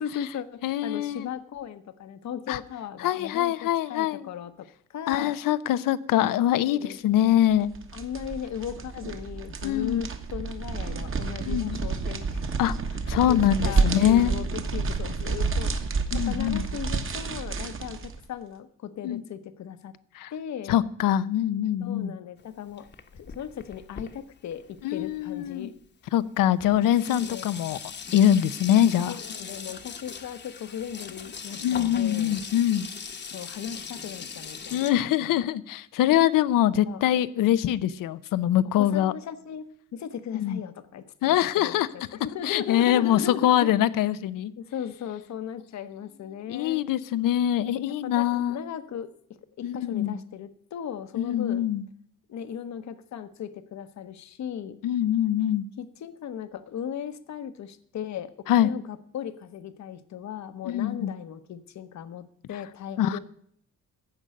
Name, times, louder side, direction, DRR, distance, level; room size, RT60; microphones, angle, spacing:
voice 1, 0.0-5.4 6.7-7.0 7.9-12.4 13.3-19.9 20.3-20.8 21.8-22.9 23.1-25.7 27.1-27.5 29.1-32.4 33.3-34.8 35.2-35.5 36.1-36.2 36.9-37.0 38.7-43.7 44.6-46.8 47.9-49.1 49.6-51.7 52.3-54.8 55.8-63.2, left 9 dB, 60° left, 1.0 m, -37 dB
voice 2, 0.6-1.3 2.5-2.6 3.0-4.3 5.1-7.7 9.6-10.0 11.5-11.8 12.6-12.7 13.1-14.3 16.1-16.6 19.0-19.2 20.1-20.3 20.7-22.2 24.8-25.7 26.1-27.8 28.1-29.2 31.6-32.9 34.7-39.1 40.3-40.6 41.2-41.9 42.4-44.5 46.5-48.6 49.6-50.2 51.1-51.8 54.8-55.7 58.5-58.7 60.7-61.1 63.0-63.2, left 11 dB, 90° left, 0.7 m, -23 dB
sound 1, 7.5-18.2, right 4 dB, 40° right, 1.3 m, -29 dB
Sink (filling or washing), 22.4-25.5 26.3-26.4 26.6-34.9, left 6 dB, 35° left, 1.0 m, -40 dB
15.0 x 5.3 x 8.9 m
cardioid pair, 140°, 32 cm